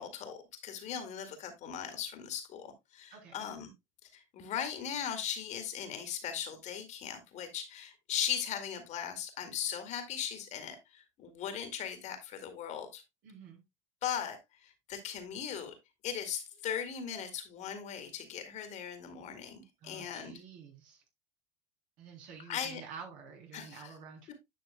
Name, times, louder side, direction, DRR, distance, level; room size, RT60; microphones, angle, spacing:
voice 1, 0.0-3.7 4.1-13.0 14.0-15.8 16.0-20.4 22.4-22.8 23.5-23.9, left 8 dB, 50° left, 2.0 m, -38 dB
voice 2, 3.1-3.4 13.2-13.6 19.8-21.0 22.0-24.3, right 6 dB, 60° right, 3.6 m, -49 dB
10.5 x 5.9 x 2.2 m
hypercardioid pair, 90°, 16 cm